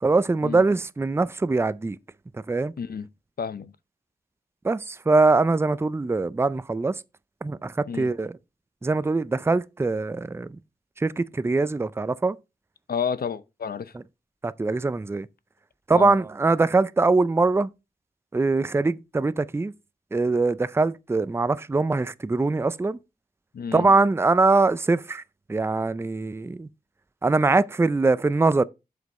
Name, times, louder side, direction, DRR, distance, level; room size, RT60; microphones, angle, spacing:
voice 1, 0.0-2.0 2.5-2.7 4.6-6.9 7.4-8.3 8.8-10.5 11.0-12.4 14.4-15.3 15.9-17.7 18.3-19.7 20.1-23.0 23.7-25.2 25.5-26.7 27.2-28.6, right 3 dB, 15° right, 0.4 m, -22 dB
voice 2, 2.8-3.1 3.4-3.7 7.9-8.1 12.9-13.9 15.9-16.1 23.5-23.9, left 6 dB, 85° left, 0.6 m, -30 dB
8.0 x 5.1 x 4.1 m
wide cardioid pair, 95°, 15 cm